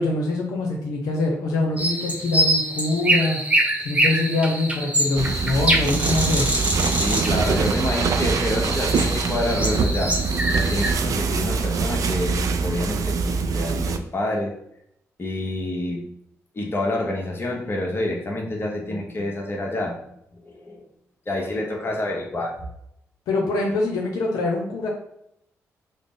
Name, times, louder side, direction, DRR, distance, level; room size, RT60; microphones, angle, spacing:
voice 1, 0.0-3.4 3.8-6.5 23.3-24.9, left 2 dB, 85° left, -1 dB, 0.6 m, -24 dB
sound 1, 1.8-10.9, right 1 dB, 20° right, 0.9 m, -25 dB
sound 2, 5.2-14.0, right 5 dB, 65° right, 0.3 m, -24 dB
voice 2, 7.0-10.2 10.5-14.5 15.2-16.1 16.5-20.0 20.4-20.8 21.3-22.5, left 1 dB, 40° left, 0 dB, 1.0 m, -27 dB
3.7 x 2.0 x 3.7 m, 0.75 s
supercardioid pair, 55°, 6 cm